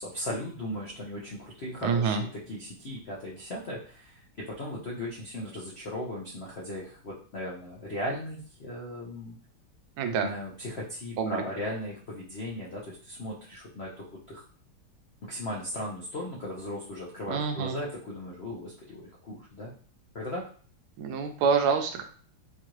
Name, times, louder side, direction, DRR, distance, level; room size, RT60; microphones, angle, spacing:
voice 1, 0.0-9.3 10.1-14.4 15.2-19.7 20.1-20.4, left 1 dB, 75° left, -4 dB, 0.5 m, -37 dB
voice 2, 1.8-2.2 10.0-10.3 11.2-11.4 17.3-17.8 21.0-22.0, right 6 dB, 85° right, 6 dB, 1.5 m, -27 dB
4.6 x 2.4 x 3.0 m, 0.44 s
omnidirectional pair, 2.3 m